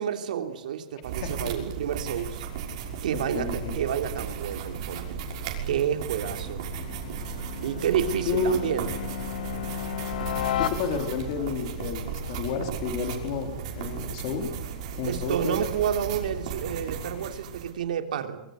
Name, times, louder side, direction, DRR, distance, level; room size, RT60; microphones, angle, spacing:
voice 1, 0.0-2.4 3.0-5.2 5.7-6.6 7.6-8.9 15.1-18.4, right 9 dB, 70° right, 6 dB, 3.3 m, -29 dB
sound 1, 1.0-17.7, right 6 dB, 45° right, 6.1 m, -35 dB
voice 2, 1.2-1.5 3.1-3.8 8.3-8.6 10.6-14.5 15.0-15.6, left 4 dB, 40° left, 5 dB, 3.8 m, -30 dB
sound 2, 5.0-11.4, left 11 dB, 90° left, 2.2 m, -35 dB
24.5 x 24.0 x 8.2 m, 0.84 s
supercardioid pair, 170°, 4 cm